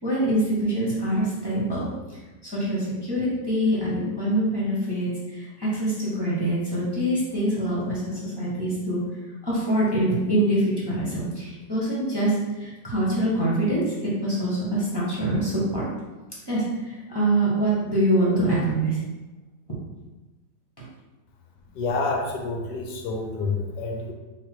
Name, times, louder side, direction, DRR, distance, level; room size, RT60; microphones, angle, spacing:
voice 1, 0.0-9.0 9.4-15.8 16.5-19.0, right 1 dB, 15° left, -7 dB, 1.2 m, -25 dB
voice 2, 21.7-24.1, left 3 dB, 85° left, 2 dB, 1.3 m, -28 dB
4.0 x 2.8 x 4.5 m, 1.1 s
omnidirectional pair, 1.8 m